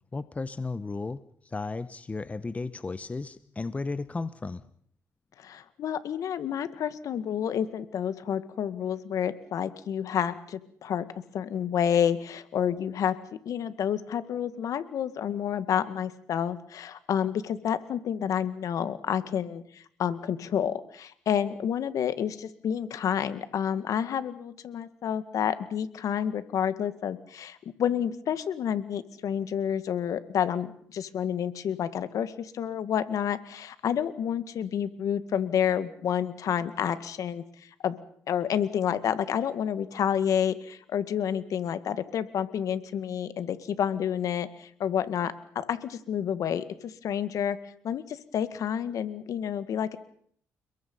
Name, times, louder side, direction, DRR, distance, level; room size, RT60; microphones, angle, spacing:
voice 1, 0.1-1.2 1.4-4.6, left 3 dB, 25° left, 14 dB, 1.1 m, -34 dB
voice 2, 5.4-11.0 11.3-13.2 13.5-38.0 38.3-47.6 47.8-50.0, left 9 dB, 65° left, 12 dB, 2.0 m, -29 dB
30.0 x 21.5 x 5.6 m, 0.63 s
cardioid pair, 90°, 6 cm